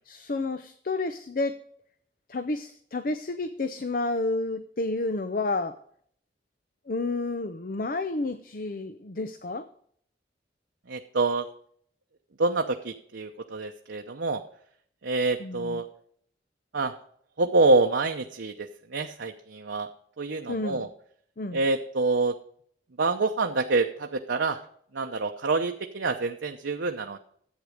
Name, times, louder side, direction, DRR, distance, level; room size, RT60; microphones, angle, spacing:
voice 1, 0.1-1.6 2.3-5.7 6.9-9.7 15.4-15.8 20.5-20.9 21.4-21.6, left 2 dB, 50° left, 11 dB, 0.6 m, -30 dB
voice 2, 10.9-11.5 12.4-14.4 15.0-15.9 16.7-16.9 17.4-19.9 20.2-20.9 21.5-22.3 23.0-24.6 24.9-27.2, right 3 dB, 85° right, 3 dB, 0.8 m, -26 dB
11.0 x 8.2 x 5.1 m, 0.62 s
head